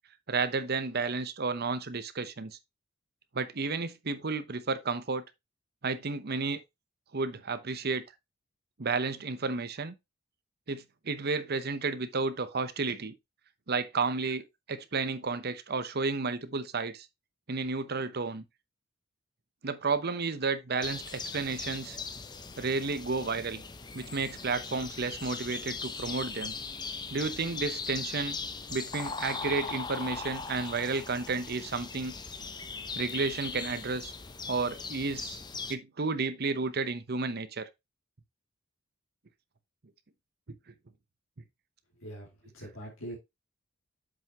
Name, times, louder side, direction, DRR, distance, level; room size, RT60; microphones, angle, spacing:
voice 1, 0.3-2.6 3.3-5.2 5.8-6.6 7.1-8.0 8.8-9.9 10.7-13.1 13.7-17.1 17.5-18.4 19.6-22.0 22.6-23.6 23.9-26.5 27.1-28.4 28.7-32.1 33.0-34.1 34.5-35.4 35.7-37.7, right 4 dB, 50° right, 0.8 m, -32 dB
sound 1, 20.8-35.8, left 4 dB, 20° left, 0.6 m, -39 dB
voice 2, 42.5-43.2, right 1 dB, 85° left, 2.7 m, -42 dB
7.8 x 5.9 x 2.9 m
head